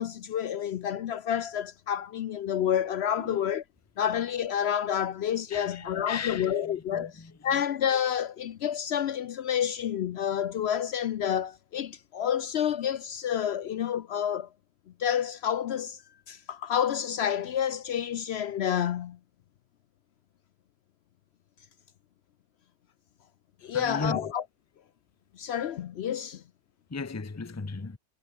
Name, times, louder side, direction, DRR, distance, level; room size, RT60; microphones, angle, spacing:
voice 1, 0.0-3.6 4.0-14.5 15.0-16.0 16.3-19.2 23.6-24.4 25.4-26.4, left 9 dB, 65° left, 0.8 m, -29 dB
voice 2, 5.5-7.6 23.7-24.3 26.9-28.0, left 4 dB, 15° left, 0.7 m, -36 dB
omnidirectional pair, 1.3 m